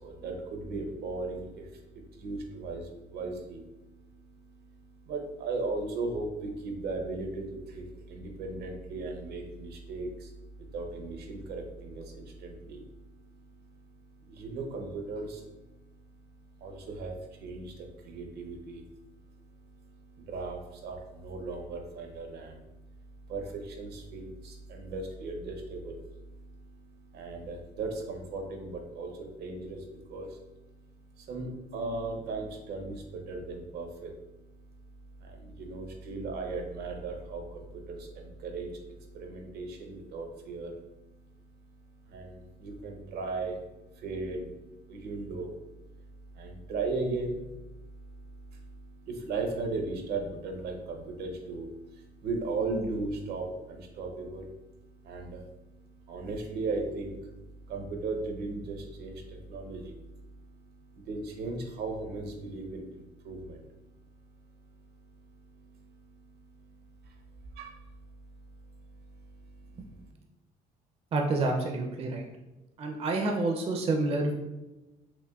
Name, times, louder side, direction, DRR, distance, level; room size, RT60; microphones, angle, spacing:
voice 1, 0.0-70.1, right 3 dB, 70° right, 3 dB, 0.7 m, -38 dB
voice 2, 71.1-72.2 72.8-74.3, right 2 dB, 35° right, 2 dB, 0.4 m, -28 dB
5.8 x 2.1 x 2.3 m, 1.0 s
cardioid pair, 110°, 17 cm